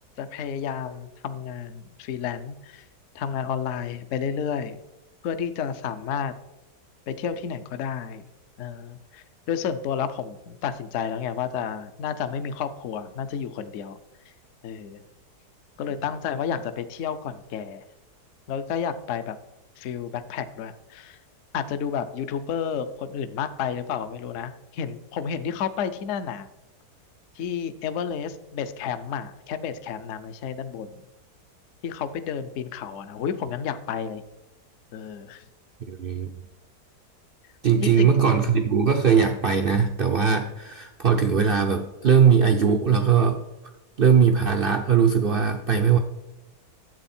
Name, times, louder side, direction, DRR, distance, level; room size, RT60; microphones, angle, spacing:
voice 1, 0.2-2.8 3.1-4.8 5.2-6.3 7.1-8.2 8.6-14.0 14.6-15.0 15.8-17.8 18.5-19.4 19.8-21.2 21.5-26.5 27.4-30.9 31.8-34.2 34.9-35.4 37.8-38.2, left 7 dB, 60° left, 11 dB, 0.8 m, -31 dB
voice 2, 35.9-36.3 37.6-43.4 44.0-46.0, right 7 dB, 80° right, 4 dB, 0.5 m, -20 dB
10.5 x 7.8 x 4.3 m, 0.98 s
omnidirectional pair, 1.8 m